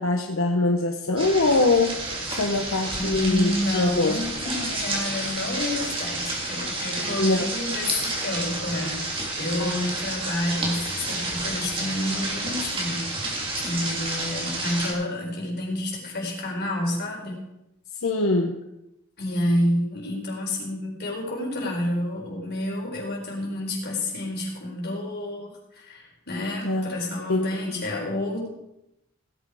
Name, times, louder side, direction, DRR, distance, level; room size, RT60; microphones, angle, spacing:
voice 1, 0.0-2.0 2.3-4.2 7.2-7.5 9.6-9.9 18.0-18.6 26.6-26.9 27.3-27.8, left 2 dB, 85° left, 2 dB, 1.1 m, -23 dB
sound 1, 1.2-14.9, right 2 dB, 25° right, 3.0 m, -30 dB
voice 2, 2.9-13.2 13.6-17.5 19.2-28.5, left 1 dB, 55° left, -1 dB, 4.3 m, -29 dB
17.0 x 8.4 x 5.0 m, 0.88 s
head